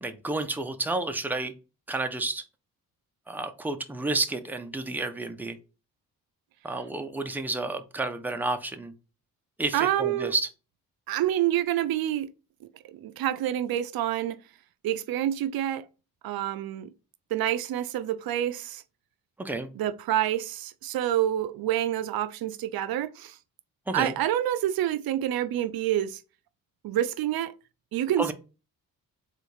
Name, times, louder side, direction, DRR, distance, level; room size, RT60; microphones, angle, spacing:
voice 1, 0.0-1.5 1.9-2.4 3.3-5.6 6.6-8.9 9.6-10.5 19.4-19.7 23.9-24.1 28.2-28.3, right 2 dB, 5° right, 0.6 m, -30 dB
voice 2, 9.7-10.3 11.1-12.3 12.8-14.4 14.8-15.8 16.2-16.9 17.3-18.8 19.7-23.4 23.9-26.2 26.8-27.5 27.9-28.3, right 12 dB, 80° right, 0.5 m, -27 dB
4.0 x 2.5 x 4.7 m
cardioid pair, 90°, 36 cm